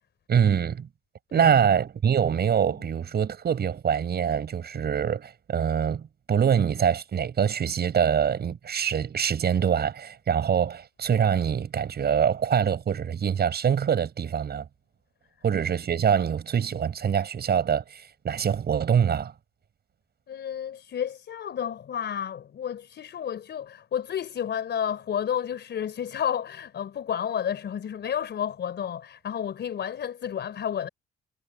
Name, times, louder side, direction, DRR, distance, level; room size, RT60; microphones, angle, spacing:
voice 1, 0.3-0.9 1.3-14.7 15.4-19.3, right 8 dB, 55° right, 7.3 m, -24 dB
voice 2, 20.3-30.9, left 9 dB, 60° left, 4.4 m, -31 dB
cardioid pair, 90°, 20 cm